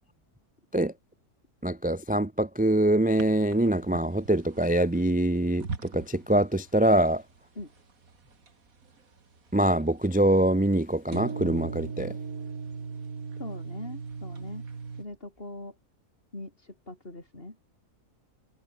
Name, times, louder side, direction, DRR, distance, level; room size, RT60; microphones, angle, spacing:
voice 1, 1.6-7.2 9.5-12.1, right 1 dB, 10° right, 0.4 m, -24 dB
sound 1, 3.2-6.3 6.5-7.0 7.3-7.4 7.7-8.5 8.8-9.5 11.1-15.0, right 5 dB, 65° right, 2.8 m, -38 dB
voice 2, 13.4-14.7 15.0-15.8 16.3-17.6, left 2 dB, 35° left, 5.2 m, -41 dB
omnidirectional pair, 1.6 m